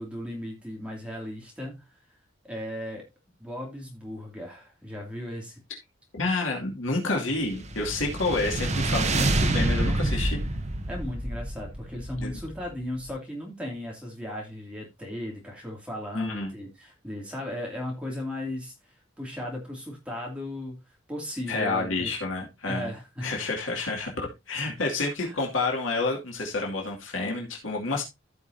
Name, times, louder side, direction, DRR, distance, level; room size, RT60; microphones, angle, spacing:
voice 1, 0.0-1.9 2.4-3.1 3.4-5.6 10.9-18.7 19.2-20.8 21.1-22.1 22.6-23.3 25.2-25.4, left 1 dB, 5° right, 2.6 m, -36 dB
voice 2, 6.1-10.4 12.2-12.4 16.1-16.5 21.5-22.9 23.2-28.0, left 3 dB, 75° left, 2.5 m, -29 dB
sound 1, 7.4-12.8, right 2 dB, 35° right, 1.3 m, -27 dB
15.5 x 5.4 x 2.7 m
head